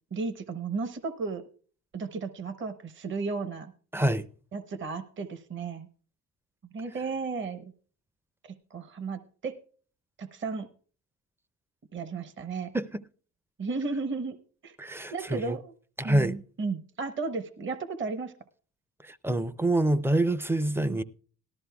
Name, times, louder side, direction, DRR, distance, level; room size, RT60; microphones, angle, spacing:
voice 1, 0.1-1.4 1.9-3.7 4.5-5.9 6.7-7.7 8.4-9.6 10.2-10.7 11.9-12.7 13.6-14.4 14.6-14.8 15.1-15.7 16.0-18.3 20.8-21.0, right 4 dB, 40° right, 0.8 m, -34 dB
voice 2, 3.9-4.3 12.7-13.0 14.8-15.6 16.0-16.4 19.0-21.0, right 1 dB, 10° right, 0.4 m, -26 dB
18.0 x 13.0 x 2.3 m
cardioid pair, 90°, 30 cm